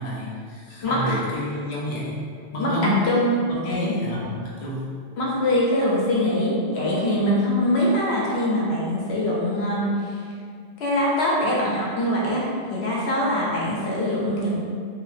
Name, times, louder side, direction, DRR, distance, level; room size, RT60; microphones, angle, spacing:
voice 1, 0.0-2.2 2.5-3.1 3.5-4.9, left 1 dB, 40° left, -6 dB, 0.6 m, -29 dB
voice 2, 0.8-1.2 2.6-2.7 3.1-3.3 3.6-3.9 5.2-10.2 10.8-14.6, left 1 dB, 75° left, -5 dB, 0.9 m, -23 dB
2.9 x 2.6 x 2.5 m, 2.2 s
omnidirectional pair, 1.1 m